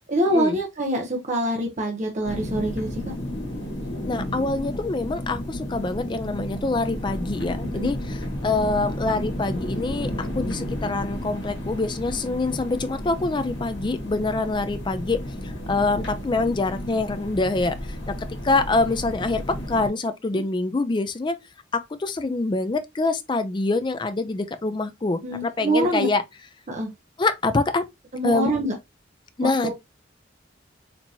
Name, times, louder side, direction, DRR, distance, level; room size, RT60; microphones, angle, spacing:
voice 1, 0.1-2.9 7.7-7.9 20.3-20.4 25.2-26.1 26.7-26.9 28.1-28.7 29.6-29.7, right 1 dB, 35° right, 0.7 m, -25 dB
sound 1, 2.2-19.9, equal, 70° left, 1.5 m, -32 dB
voice 2, 4.1-8.2 8.4-15.2 15.4-17.7 18.1-18.2 18.4-19.4 19.7-21.3 21.7-26.2 27.2-27.8 28.2-28.5 29.4-29.7, left 3 dB, 25° left, 0.4 m, -25 dB
4.4 x 2.8 x 2.7 m
head